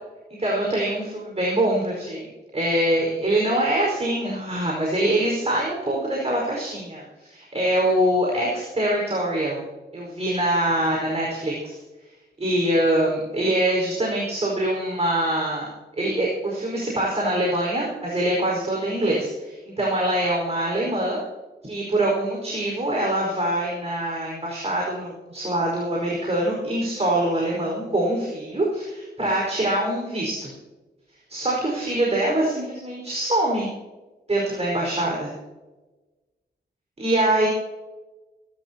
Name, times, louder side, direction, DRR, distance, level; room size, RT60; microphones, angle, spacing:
voice 1, 0.4-2.3 2.5-9.6 9.9-11.8 12.4-15.7 16.0-21.2 21.6-30.5 31.3-33.7 34.3-35.3 37.0-37.5, right 1 dB, 35° right, -3 dB, 4.9 m, -24 dB
25.0 x 12.5 x 2.9 m, 1.2 s
wide cardioid pair, 85°, 19 cm